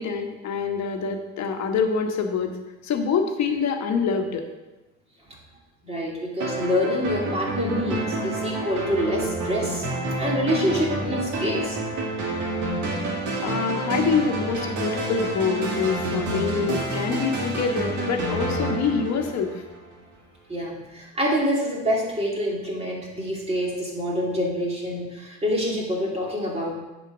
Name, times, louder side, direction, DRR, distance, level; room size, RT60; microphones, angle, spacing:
voice 1, 0.0-2.6 2.8-4.4 13.4-19.5, left 5 dB, 55° left, 4 dB, 1.3 m, -25 dB
voice 2, 5.8-11.8 20.5-26.7, equal, 20° right, -3 dB, 2.6 m, -26 dB
sound 1, 6.4-19.9, right 2 dB, 65° right, 2.0 m, -29 dB
8.4 x 4.5 x 6.2 m, 1.1 s
cardioid pair, 95°, 32 cm